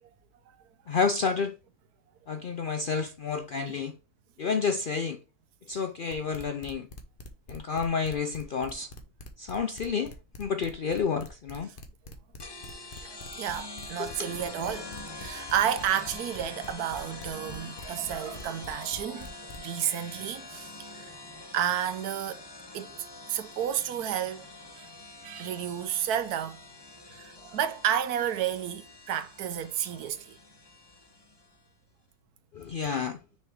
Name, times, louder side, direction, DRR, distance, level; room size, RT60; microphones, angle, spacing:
voice 1, 0.9-1.5 2.3-3.9 4.4-5.2 5.7-6.9 7.5-8.9 9.4-11.7 14.0-14.3 32.5-33.2, left 5 dB, 80° left, 0.4 m, -30 dB
sound 1, 6.1-19.7, left 2 dB, 35° left, 1.2 m, -45 dB
sound 2, 12.4-31.5, left 2 dB, 20° left, 0.8 m, -44 dB
voice 2, 13.0-14.9 15.2-21.1 21.5-22.4 22.7-22.9 23.3-24.4 24.8-24.9 25.2-26.6 27.2-30.4, right 9 dB, 75° right, 1.3 m, -31 dB
6.5 x 5.1 x 3.6 m
omnidirectional pair, 1.6 m